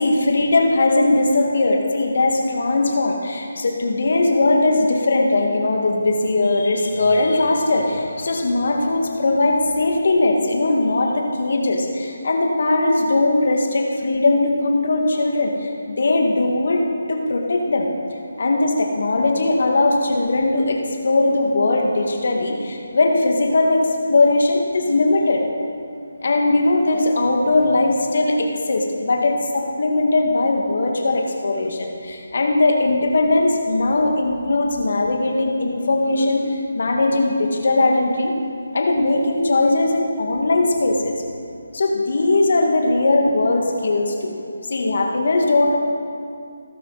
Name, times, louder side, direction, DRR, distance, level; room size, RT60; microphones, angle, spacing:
voice 1, 0.0-16.8 17.1-17.9 18.4-25.4 26.2-38.3 38.7-41.1 41.7-44.4 44.7-45.8, left 2 dB, 60° left, 1 dB, 2.1 m, -19 dB
20.0 x 11.5 x 4.2 m, 2.4 s
figure-of-eight pair, 160°, 0 cm